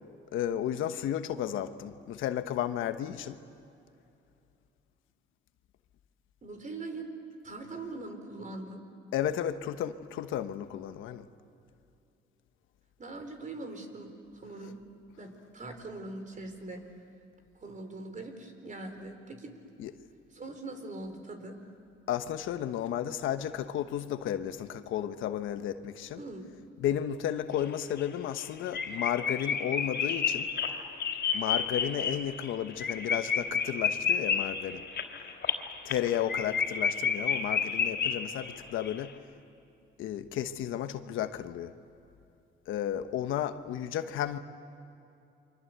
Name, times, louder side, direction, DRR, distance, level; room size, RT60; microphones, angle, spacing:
voice 1, 0.3-3.4 9.1-11.2 19.8-19.9 22.1-26.2 26.8-30.5 31.3-34.9 35.8-39.1 40.0-41.7 42.7-44.4, left 10 dB, 85° left, 9 dB, 1.2 m, -33 dB
voice 2, 6.4-7.1 7.4-8.9 13.0-14.8 15.2-16.8 17.6-19.5 20.3-21.6 26.2-26.4, right 2 dB, 40° right, 6 dB, 4.4 m, -42 dB
sound 1, 27.6-27.7 28.0-28.1 28.4-28.5 28.7-38.6 38.8-38.9, left 6 dB, 60° left, 3.5 m, -30 dB
29.5 x 24.5 x 8.1 m, 2.6 s
cardioid pair, 90°, 20 cm